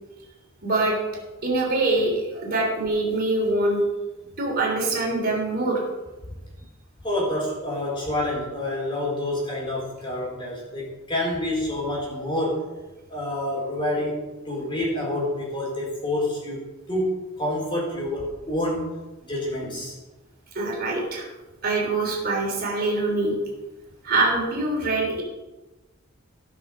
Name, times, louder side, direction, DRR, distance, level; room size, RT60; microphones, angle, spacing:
voice 1, 0.6-1.0 1.4-3.8 4.4-5.8 20.5-21.3 21.6-23.3 24.0-25.2, right 2 dB, 45° right, -2 dB, 3.4 m, -24 dB
voice 2, 7.0-12.7 13.1-16.6 16.9-18.9 19.2-19.9, left 1 dB, 25° left, -3 dB, 4.2 m, -28 dB
16.5 x 6.3 x 6.1 m, 1.1 s
head